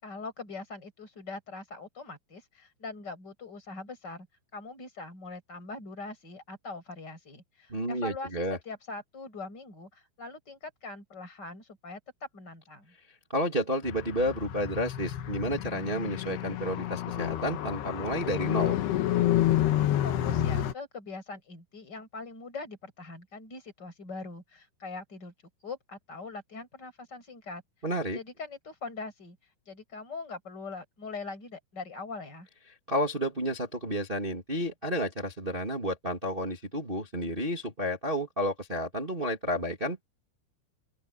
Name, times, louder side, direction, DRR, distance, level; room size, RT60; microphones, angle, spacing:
voice 1, 0.0-4.3 4.5-12.0 12.3-12.9 20.0-25.3 25.6-27.6 28.1-29.4 29.7-32.5, left 3 dB, 20° left, 8.3 m, -42 dB
voice 2, 7.7-8.6 13.3-18.7 27.8-28.2 32.9-40.0, equal, 25° right, 1.1 m, -31 dB
Car, 13.8-20.7, left 12 dB, 65° left, 3.1 m, -29 dB
open air
omnidirectional pair, 5.7 m